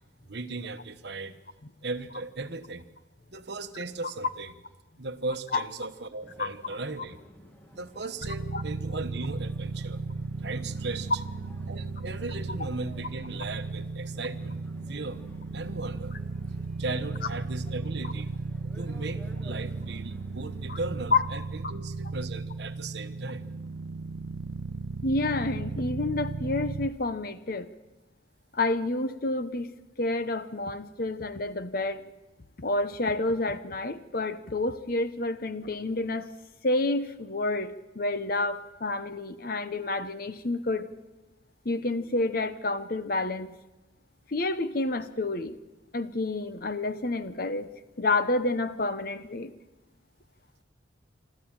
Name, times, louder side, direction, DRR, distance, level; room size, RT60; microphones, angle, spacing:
voice 1, 0.3-1.4 1.8-2.9 3.3-4.5 5.0-7.2 7.7-10.0 10.4-11.2 11.7-14.6 14.9-15.2 15.5-16.1 16.8-18.3 18.6-23.4, right 3 dB, 55° right, 10 dB, 1.1 m, -37 dB
sound 1, 6.2-21.0, equal, 10° left, 1.7 m, -52 dB
sound 2, 8.2-26.9, right 3 dB, 80° right, 0.7 m, -35 dB
voice 2, 25.0-27.7 28.5-29.7 30.0-32.0 32.6-36.3 36.6-40.9 41.6-43.5 44.3-45.6 45.9-47.7 48.0-49.5, left 2 dB, 50° left, 12 dB, 0.9 m, -29 dB
25.5 x 13.5 x 8.8 m, 1.1 s
head